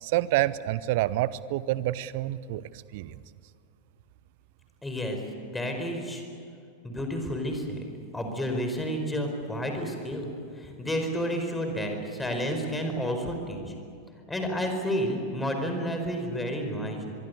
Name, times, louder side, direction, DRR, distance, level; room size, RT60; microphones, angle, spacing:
voice 1, 0.0-3.2, right 15 dB, 50° right, 18 dB, 0.8 m, -28 dB
voice 2, 4.8-6.2 6.8-7.9 8.1-13.7 14.3-17.1, equal, 10° left, 4 dB, 4.7 m, -31 dB
24.5 x 23.0 x 8.3 m, 2.4 s
figure-of-eight pair, 90°, 0 cm